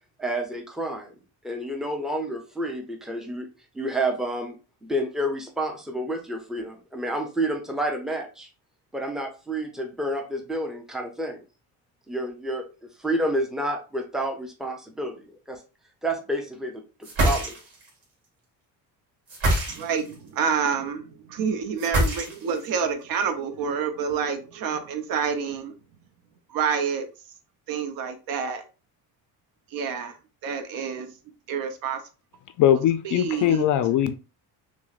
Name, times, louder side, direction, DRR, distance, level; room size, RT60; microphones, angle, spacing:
voice 1, 0.2-1.1 1.4-3.5 3.7-4.6 4.8-8.5 8.9-11.4 12.1-12.6 13.0-15.6 16.0-16.8 17.2-17.6, right 1 dB, ahead, 0.5 m, -29 dB
sound 1, 17.0-17.9 19.3-20.1 21.8-22.6, right 1 dB, 40° right, 1.9 m, -24 dB
voice 2, 19.7-25.7 26.5-27.1 27.7-28.6 29.7-30.2 30.4-31.1 31.5-32.0 33.0-33.7, right 6 dB, 65° right, 0.8 m, -28 dB
voice 3, 32.6-34.1, left 11 dB, 55° left, 0.4 m, -21 dB
6.1 x 2.1 x 2.4 m
cardioid pair, 155°, 38 cm